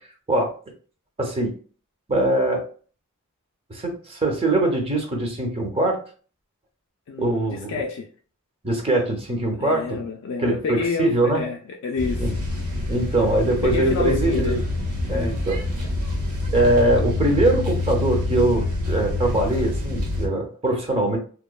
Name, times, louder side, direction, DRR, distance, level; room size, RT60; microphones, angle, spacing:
voice 1, 1.2-1.5 2.1-2.6 3.7-6.0 7.2-7.8 8.6-10.0 10.4-11.4 12.2-12.3 12.9-14.6 15.1-15.6 16.5-21.2, right 2 dB, 25° right, 0.6 m, -22 dB
voice 2, 7.1-8.1 9.5-11.1 11.3-12.2 13.6-14.6 15.1-15.3, left 4 dB, 60° left, 0.3 m, -28 dB
sound 1, 12.0-20.3, left 2 dB, 75° right, 0.8 m, -26 dB
2.9 x 2.1 x 2.2 m
head